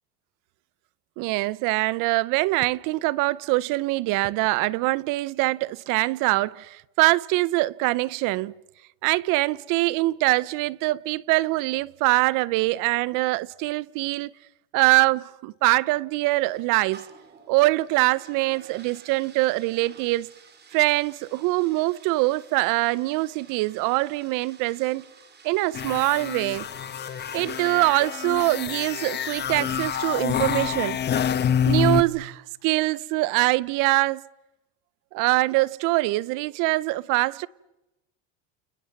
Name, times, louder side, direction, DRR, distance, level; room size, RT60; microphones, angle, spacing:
voice 1, 1.2-8.5 9.0-14.3 14.7-17.1 17.5-20.3 20.7-25.0 25.4-26.7 27.3-31.0 31.7-34.2 35.1-37.5, right 20 dB, 60° right, 0.8 m, -23 dB
sound 1, 16.4-31.7, right 5 dB, 25° right, 3.7 m, -52 dB
sound 2, 25.7-32.0, left 8 dB, 30° left, 1.2 m, -27 dB
29.5 x 29.0 x 5.9 m
supercardioid pair, 130°, 36 cm